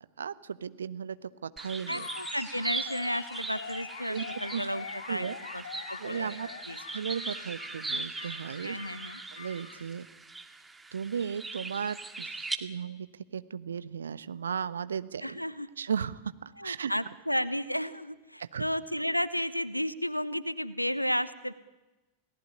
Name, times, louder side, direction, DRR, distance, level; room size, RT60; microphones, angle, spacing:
voice 1, 0.2-2.1 4.1-4.2 4.5-4.6 5.1-5.4 6.0-6.5 6.9-8.8 9.3-10.1 10.9-13.1 13.3-15.4 15.8-16.9 18.4-18.7, right 7 dB, 70° right, 15 dB, 1.1 m, -35 dB
sound 1, 1.6-12.6, right 3 dB, 10° right, 2.0 m, -40 dB
voice 2, 1.9-5.2 5.5-5.6 5.9-6.4 6.7-6.8 8.6-9.2 15.2-15.7 16.6-21.5, equal, 90° left, 17 dB, 1.2 m, -33 dB
Animal, 1.9-9.8, left 5 dB, 65° left, 5.4 m, -43 dB
29.0 x 18.5 x 9.7 m, 1.1 s
figure-of-eight pair, 90°, 0 cm